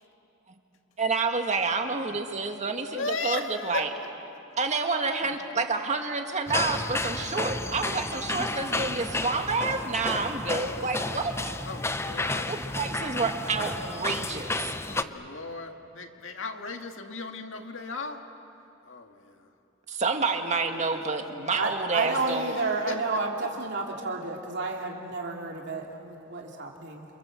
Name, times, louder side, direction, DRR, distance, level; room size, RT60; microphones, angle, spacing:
voice 1, 1.0-3.9 4.6-11.5 12.5-14.8 19.9-22.6, right 4 dB, 35° right, 4 dB, 1.9 m, -29 dB
voice 2, 2.0-2.5 2.9-3.9 5.2-5.4 10.1-10.9 11.6-12.5 14.8-18.2 18.9-19.5 20.4-21.0 22.1-23.2, left 3 dB, 75° left, 4 dB, 2.0 m, -37 dB
sound 1, 6.5-15.0, left 2 dB, 15° left, 0.7 m, -32 dB
voice 3, 21.6-27.0, right 3 dB, 60° right, 0 dB, 2.6 m, -31 dB
29.0 x 26.5 x 7.7 m, 3.0 s
head